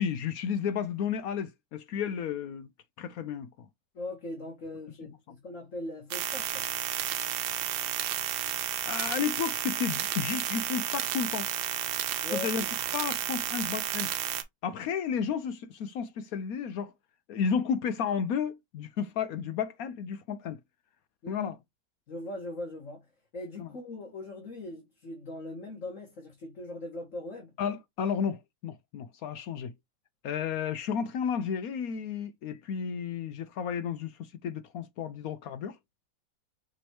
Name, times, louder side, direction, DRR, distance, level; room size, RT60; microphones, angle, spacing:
voice 1, 0.0-2.7 3.0-3.7 8.8-11.5 12.3-12.6 12.9-14.1 14.6-16.9 17.3-20.6 21.3-21.6 23.6-23.7 27.6-29.7 30.2-35.8, left 7 dB, 75° left, 0.8 m, -32 dB
voice 2, 3.9-6.7 12.2-12.7 21.2-21.6 22.1-27.6, left 2 dB, 45° left, 1.9 m, -40 dB
sound 1, 6.1-14.4, right 11 dB, 85° right, 1.5 m, -32 dB
6.1 x 3.0 x 2.9 m
omnidirectional pair, 2.0 m